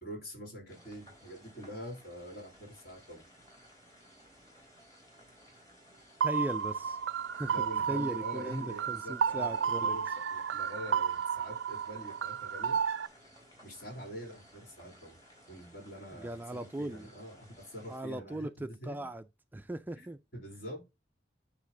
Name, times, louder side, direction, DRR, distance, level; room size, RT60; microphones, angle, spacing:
voice 1, 0.0-3.3 7.4-12.8 13.6-15.2 15.5-19.1 20.0-20.1 20.3-20.8, equal, 55° left, 3.0 m, -45 dB
sound 1, 0.7-18.0, equal, 20° left, 3.6 m, -58 dB
voice 2, 6.2-7.0 7.3-7.5 7.9-10.0 16.1-17.1 17.9-19.2 19.5-20.2, right 1 dB, 10° right, 0.3 m, -38 dB
sound 2, 6.2-13.1, right 7 dB, 80° right, 0.4 m, -32 dB
9.6 x 3.4 x 3.7 m
head